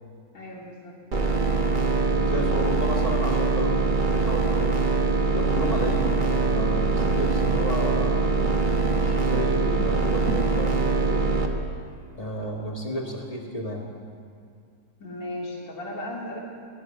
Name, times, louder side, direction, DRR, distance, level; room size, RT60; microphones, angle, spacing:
voice 1, 0.3-1.0 15.0-16.4, left 1 dB, 80° left, -5 dB, 3.8 m, -36 dB
sound 1, 1.1-11.5, right 3 dB, 35° right, 1.0 m, -23 dB
voice 2, 2.1-4.9 5.3-8.2 8.9-11.4 12.1-13.9, equal, 20° left, -1 dB, 1.9 m, -32 dB
sound 2, 5.1-11.4, right 4 dB, 60° right, 1.6 m, -36 dB
20.0 x 6.7 x 9.7 m, 2.3 s
omnidirectional pair, 1.9 m